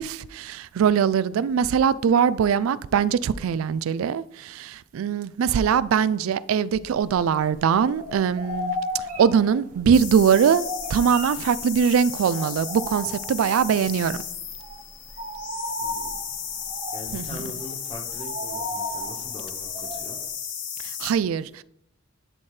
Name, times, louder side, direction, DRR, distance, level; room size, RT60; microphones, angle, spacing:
voice 1, 0.0-14.2 17.1-17.4 21.0-21.6, right 7 dB, 80° right, 0.3 m, -22 dB
sound 1, 7.0-7.7 8.0-11.9 12.3-13.6 14.0-14.2 14.5-20.3, left 1 dB, 40° right, 1.3 m, -35 dB
sound 2, 9.9-21.1, left 8 dB, 60° left, 1.2 m, -35 dB
voice 2, 15.8-16.2 16.9-20.2, left 1 dB, 25° left, 1.3 m, -41 dB
11.0 x 4.4 x 3.2 m
head